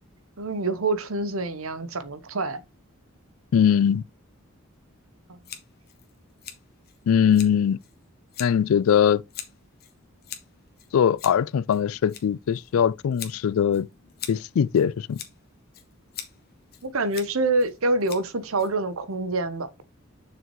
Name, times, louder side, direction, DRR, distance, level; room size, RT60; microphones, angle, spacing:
voice 1, 0.4-2.6 5.3-5.4 16.8-19.7, right 2 dB, 80° right, 1.0 m, -26 dB
voice 2, 3.5-4.0 7.1-7.8 8.4-9.2 10.9-13.9 14.3-15.2, left 8 dB, 80° left, 0.3 m, -21 dB
Scissors, 5.4-19.1, left 10 dB, 50° left, 1.4 m, -44 dB
7.1 x 6.1 x 3.1 m
head